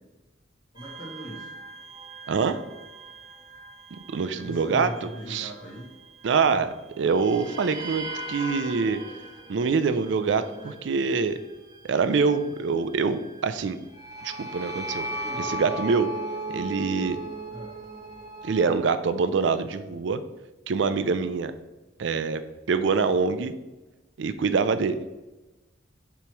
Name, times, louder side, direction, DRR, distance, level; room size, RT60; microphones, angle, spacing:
voice 1, 0.7-1.5 4.4-5.9 6.5-6.6 10.4-10.7 15.2-15.7 17.5-17.7, equal, 50° left, -5 dB, 2.0 m, -40 dB
sound 1, 0.8-6.7 7.1-18.8, right 1 dB, 20° right, 0.9 m, -38 dB
voice 2, 2.3-2.6 4.1-5.5 6.2-6.7 7.0-9.0 9.5-11.4 11.8-13.8 14.2-15.1 15.4-16.1 16.5-17.2 18.4-20.2 20.7-21.5 22.0-22.4 22.7-23.5 24.2-25.0, right 5 dB, 75° right, 12 dB, 0.4 m, -25 dB
6.9 x 3.1 x 4.5 m, 1.1 s
head